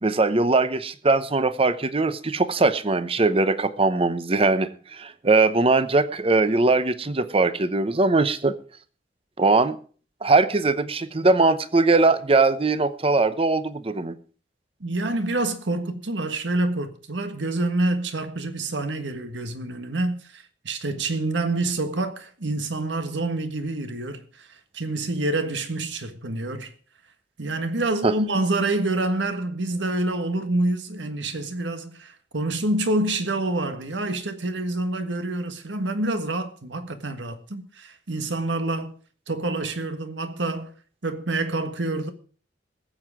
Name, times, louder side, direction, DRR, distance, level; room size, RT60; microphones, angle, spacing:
voice 1, 0.0-8.5 9.4-9.8 10.2-14.2 28.0-28.1, right 3 dB, 30° right, 0.8 m, -21 dB
voice 2, 14.8-24.5 24.7-26.7 27.4-38.9 39.3-40.7 41.0-42.1, right 2 dB, 80° right, 1.6 m, -27 dB
19.5 x 7.8 x 4.9 m
head